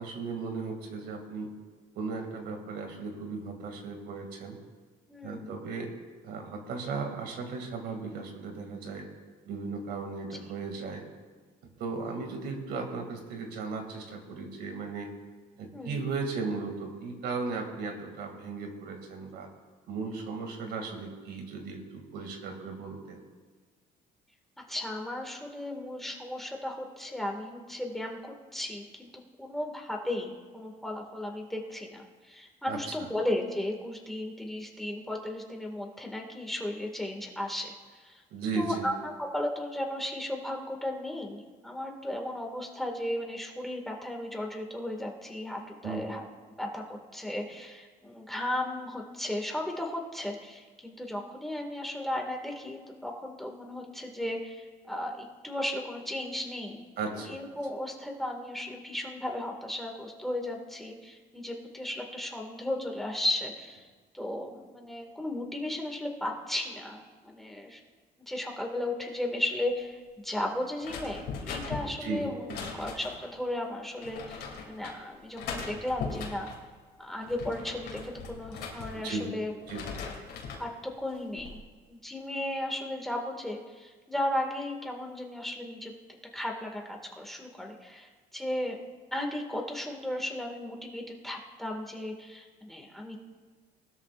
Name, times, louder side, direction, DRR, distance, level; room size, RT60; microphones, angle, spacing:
voice 1, 0.0-1.5 2.0-4.6 5.2-5.9 6.2-9.1 9.5-11.0 11.8-15.1 15.6-19.5 19.9-23.2 32.7-32.8 38.3-38.9 45.8-46.1 57.0-57.4 72.0-72.6 78.9-79.3 79.7-79.8, right 4 dB, 75° right, 3 dB, 2.3 m, -36 dB
voice 2, 5.1-5.5 10.3-10.4 15.7-16.0 20.6-20.7 24.7-29.1 29.4-38.2 38.6-46.2 46.6-63.8 64.1-67.8 68.3-76.5 77.0-79.5 80.6-85.9 86.3-88.8 89.1-93.2, left 1 dB, ahead, 1 dB, 1.9 m, -35 dB
sound 1, 70.8-73.3 74.0-75.0 75.4-76.6 77.1-79.3 79.6-80.7 81.1-81.6, left 5 dB, 85° left, 2.8 m, -39 dB
20.0 x 13.0 x 2.5 m, 1.4 s
cardioid pair, 110°, 17 cm